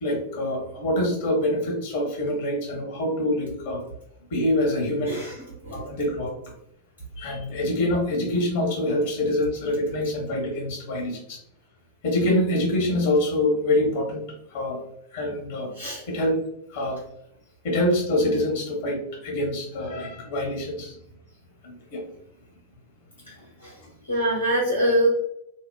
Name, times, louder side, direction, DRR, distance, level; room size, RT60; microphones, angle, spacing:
voice 1, 0.0-3.8 4.3-5.2 5.7-6.3 7.2-11.4 12.0-14.2 14.5-14.8 15.1-15.7 16.1-16.4 16.7-17.0 17.6-21.0 21.6-22.0, left 1 dB, 55° left, -1 dB, 0.9 m, -25 dB
voice 2, 5.1-5.4 5.6-5.8 15.8-16.0 23.6-23.7 24.1-25.1, right 1 dB, 85° left, -9 dB, 1.2 m, -23 dB
2.8 x 2.0 x 2.2 m, 0.75 s
figure-of-eight pair, 90°, 0 cm